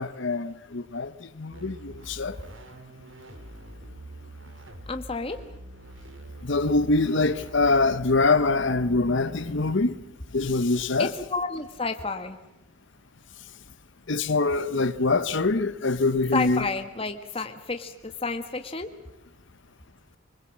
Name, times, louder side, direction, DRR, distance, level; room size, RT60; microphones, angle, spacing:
voice 1, 0.0-2.4 6.4-10.0 10.3-11.1 14.1-16.6, left 3 dB, 60° left, 0.9 m, -24 dB
sound 1, 1.5-9.7, right 1 dB, 65° right, 2.3 m, -44 dB
voice 2, 4.9-5.4 11.0-12.4 16.3-18.9, left 3 dB, 25° left, 1.4 m, -30 dB
25.0 x 21.0 x 7.4 m
head